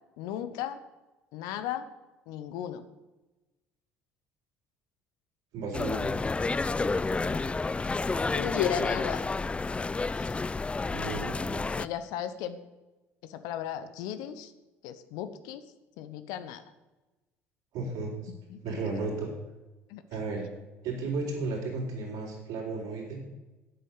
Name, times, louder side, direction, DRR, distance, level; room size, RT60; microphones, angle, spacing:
voice 1, 0.2-0.8 1.3-1.9 2.3-2.8 6.9-7.5 8.3-9.3 10.1-10.4 11.0-11.2 11.7-12.6 13.2-14.5 14.8-15.6 16.0-16.6 18.5-19.1 19.9-20.0, left 10 dB, 70° left, 11 dB, 0.9 m, -36 dB
voice 2, 5.5-6.0 10.9-11.6 17.7-18.1 18.6-19.3 20.1-20.5 20.8-23.2, right 3 dB, 65° right, -2 dB, 4.5 m, -34 dB
sound 1, 5.7-11.9, left 3 dB, 15° left, 0.3 m, -30 dB
9.3 x 8.4 x 7.9 m, 1.1 s
hypercardioid pair, 55°, 7 cm